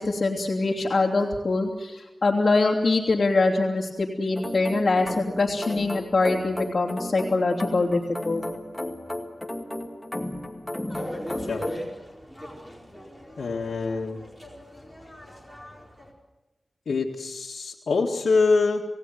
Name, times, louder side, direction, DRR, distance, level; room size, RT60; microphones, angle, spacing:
voice 1, 0.0-8.4, left 3 dB, 45° left, -3 dB, 2.9 m, -24 dB
sound 1, 4.4-11.8, left 1 dB, 10° left, 2.1 m, -34 dB
sound 2, 10.9-16.1, equal, 5° right, 4.6 m, -40 dB
voice 2, 13.4-14.2 16.9-18.8, left 4 dB, 85° left, -3 dB, 2.0 m, -24 dB
27.5 x 18.0 x 7.9 m, 1.1 s
wide cardioid pair, 95°, 0 cm